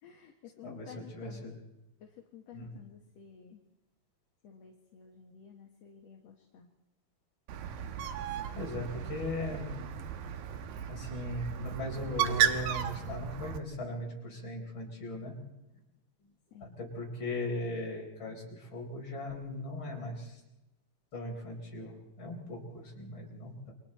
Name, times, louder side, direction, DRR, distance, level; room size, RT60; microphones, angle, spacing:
voice 1, 0.0-1.6 2.0-3.6 4.4-6.7 16.5-16.8, left 8 dB, 55° left, 2 dB, 2.4 m, -52 dB
voice 2, 1.1-1.5 2.5-2.7 8.5-9.7 10.9-15.4 16.8-20.4 21.1-23.7, left 1 dB, 35° left, -1 dB, 4.9 m, -38 dB
Bird, 7.5-13.6, right 9 dB, 80° right, 2.9 m, -34 dB
29.0 x 24.5 x 4.4 m, 0.98 s
omnidirectional pair, 4.0 m